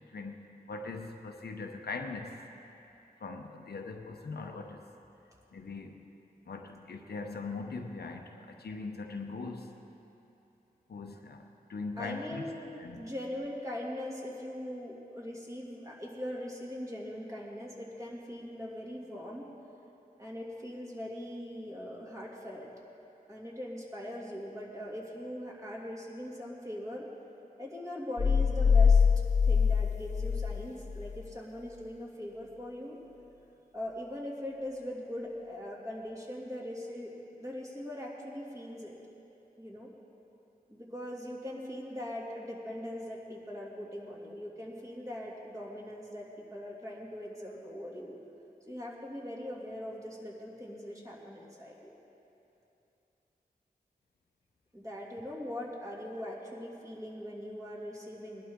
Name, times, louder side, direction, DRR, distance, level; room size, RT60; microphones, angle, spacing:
voice 1, 0.1-2.4 3.2-4.8 5.5-6.0 6.5-9.7 10.9-11.4 11.7-12.4 12.8-13.1, left 3 dB, 90° left, 3 dB, 0.9 m, -40 dB
voice 2, 12.0-19.5 20.2-22.7 23.3-27.1 27.6-29.0 29.4-33.0 33.7-39.0 39.6-39.9 40.7-48.2 48.7-51.9 54.7-58.4, left 1 dB, 20° right, -4 dB, 2.6 m, -41 dB
sound 1, 28.2-31.2, left 6 dB, 45° left, 0.6 m, -24 dB
20.0 x 11.5 x 3.7 m, 2.9 s
wide cardioid pair, 65°, 16 cm